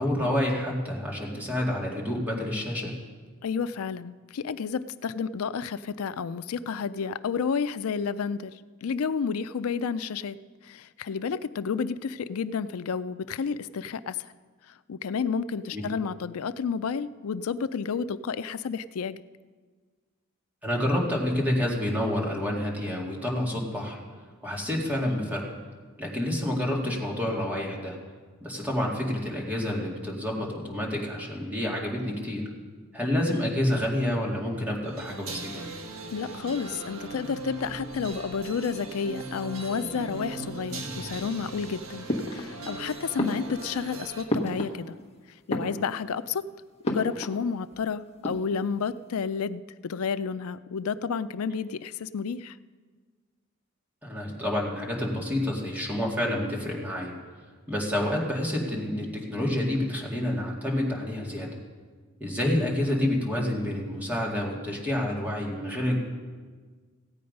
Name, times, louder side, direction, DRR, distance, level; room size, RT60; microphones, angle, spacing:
voice 1, 0.0-2.9 15.7-15.8 20.6-24.0 24.4-25.4 26.0-28.0 28.4-32.4 32.9-35.6 54.0-57.1 57.7-61.6 62.2-65.9, left 1 dB, 10° right, -3 dB, 2.3 m, -28 dB
voice 2, 3.4-10.4 10.6-14.3 14.9-19.2 36.1-44.9 45.5-46.5 46.8-52.6, left 6 dB, 80° left, 14 dB, 0.4 m, -31 dB
sound 1, 34.8-44.2, right 2 dB, 70° right, 1.4 m, -39 dB
sound 2, 42.1-42.8 43.2-45.1 45.4-46.2 46.8-47.5 47.7-47.8 48.1-48.8, equal, 30° left, 1.3 m, -32 dB
16.0 x 8.6 x 5.3 m, 1.5 s
head